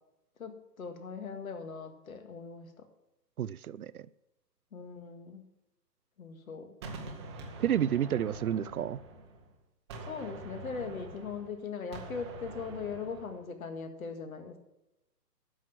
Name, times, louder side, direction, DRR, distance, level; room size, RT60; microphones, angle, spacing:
voice 1, 0.4-2.7 4.7-5.5 6.2-6.7 10.0-14.6, left 5 dB, 55° left, 8 dB, 1.9 m, -40 dB
voice 2, 3.4-3.9 7.6-9.0, right 10 dB, 60° right, 18 dB, 0.5 m, -30 dB
Gunshot gunfire, 6.8-9.5 9.9-13.4, right 2 dB, 15° right, 1.0 m, -45 dB
11.0 x 6.3 x 7.6 m, 0.94 s
hypercardioid pair, 160°, 50 cm